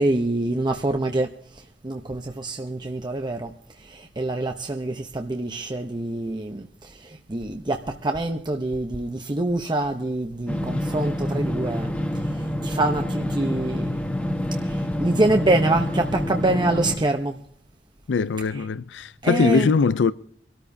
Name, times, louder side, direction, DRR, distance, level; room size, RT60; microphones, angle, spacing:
voice 1, 0.0-3.5 3.8-14.0 14.6-17.4 19.2-19.7, right 2 dB, 25° right, 0.7 m, -26 dB
sound 1, 10.5-17.0, left 1 dB, 10° left, 1.3 m, -27 dB
voice 2, 18.1-20.1, left 5 dB, 80° left, 0.4 m, -21 dB
24.5 x 13.0 x 2.7 m
head